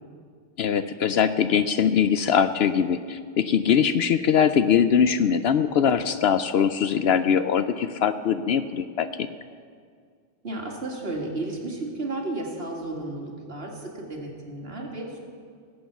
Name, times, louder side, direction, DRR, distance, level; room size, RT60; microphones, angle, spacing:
voice 1, 0.6-9.3, left 7 dB, 65° left, 11 dB, 0.7 m, -22 dB
voice 2, 10.4-15.2, right 2 dB, 55° right, -1 dB, 2.5 m, -33 dB
18.0 x 8.6 x 7.1 m, 2.1 s
omnidirectional pair, 1.2 m